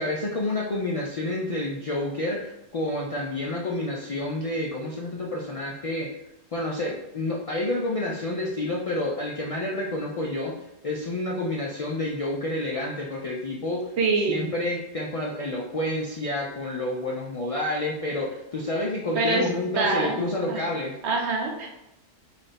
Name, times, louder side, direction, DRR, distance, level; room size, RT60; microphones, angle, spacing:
voice 1, 0.0-6.1 6.5-10.5 10.8-13.9 14.3-21.0, left 1 dB, 60° left, -3 dB, 0.3 m, -29 dB
voice 2, 14.0-14.5 19.1-19.5 19.7-20.2 20.5-20.6 21.0-21.7, right 3 dB, 80° right, 1 dB, 1.0 m, -25 dB
3.3 x 2.5 x 4.0 m, 0.91 s
omnidirectional pair, 1.1 m